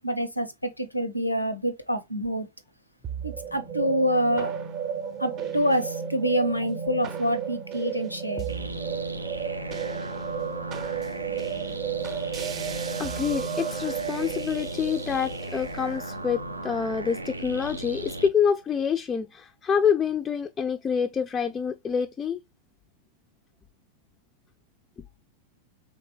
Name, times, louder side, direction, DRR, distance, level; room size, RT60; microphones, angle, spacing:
voice 1, 0.0-2.5 3.2-4.5 5.2-8.4, equal, 85° left, 0.6 m, -26 dB
sound 1, 3.0-17.5, right 7 dB, 35° right, 0.6 m, -34 dB
sound 2, 8.5-18.3, right 1 dB, 85° right, 0.4 m, -36 dB
voice 2, 13.0-22.4, left 7 dB, 20° left, 0.3 m, -27 dB
3.9 x 3.3 x 3.0 m
figure-of-eight pair, 90°, 0 cm